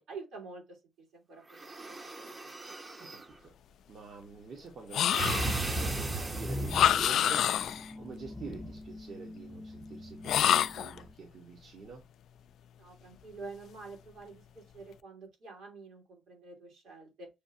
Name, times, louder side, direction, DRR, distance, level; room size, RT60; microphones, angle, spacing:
voice 1, 0.0-2.5 12.8-17.3, right 4 dB, 80° right, 2.7 m, -48 dB
sound 1, 1.5-3.3 5.1-7.0, right 2 dB, 25° right, 0.8 m, -35 dB
voice 2, 3.0-3.5 3.9-12.0, right 4 dB, 55° right, 1.1 m, -47 dB
sound 2, 4.9-5.7 6.7-7.9 10.2-11.0, left 10 dB, 75° left, 0.3 m, -27 dB
sound 3, 5.8-11.1, left 1 dB, 5° left, 0.6 m, -43 dB
6.9 x 2.4 x 2.7 m
cardioid pair, 90°, 0 cm